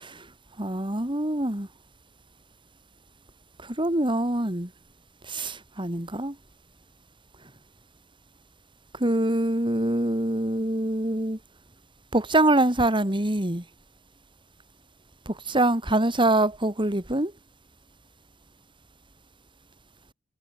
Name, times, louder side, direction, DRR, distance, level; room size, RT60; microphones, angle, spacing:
voice 1, 0.6-1.7 3.6-4.7 5.2-6.4 8.9-11.4 12.1-13.6 15.4-17.3, right 1 dB, 25° right, 3.3 m, -24 dB
head